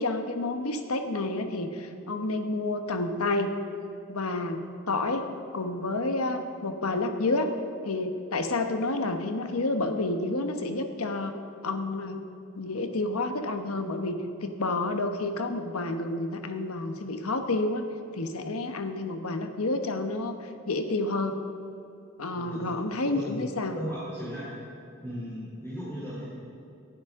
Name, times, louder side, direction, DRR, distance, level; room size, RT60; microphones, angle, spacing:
voice 1, 0.0-3.5 4.1-4.6 4.9-5.3 5.5-7.5 7.8-11.4 11.6-12.2 12.5-14.2 14.4-17.9 18.1-20.4 20.7-21.4 22.2-23.8, left 2 dB, 85° left, 7 dB, 1.1 m, -29 dB
voice 2, 22.3-22.7 23.1-23.4 23.7-24.5 25.0-26.4, equal, 10° left, -10 dB, 3.3 m, -37 dB
19.0 x 11.5 x 3.7 m, 2.8 s
head